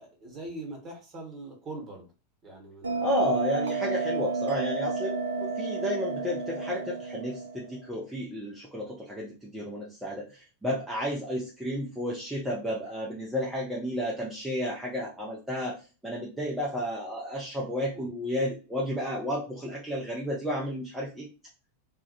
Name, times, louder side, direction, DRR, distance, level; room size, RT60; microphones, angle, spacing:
voice 1, 0.0-2.1 2.4-3.1 17.9-18.1, right 2 dB, 25° right, 0 dB, 1.0 m, -42 dB
Bell, 2.8-7.9, right 4 dB, 70° right, 0.3 m, -31 dB
voice 2, 3.0-21.3, equal, 5° right, -4 dB, 0.5 m, -32 dB
2.2 x 2.1 x 2.8 m, 0.33 s
figure-of-eight pair, 90°, 0 cm